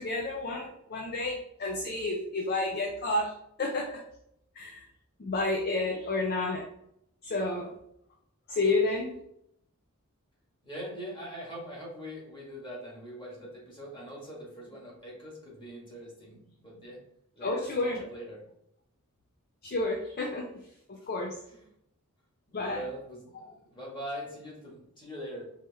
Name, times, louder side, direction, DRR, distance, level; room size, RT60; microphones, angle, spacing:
voice 1, 0.0-3.3 3.6-4.0 4.6-4.9 5.2-6.6 7.2-7.7 8.5-9.2 17.4-18.0 19.6-20.6 20.9-21.3 22.5-22.8 23.3-23.5, left 2 dB, 45° left, 1 dB, 0.5 m, -30 dB
voice 2, 10.6-17.0 17.3-18.4 21.0-21.1 21.5-21.7 22.5-25.4, equal, 20° left, -4 dB, 1.6 m, -42 dB
4.6 x 3.0 x 3.4 m, 0.77 s
head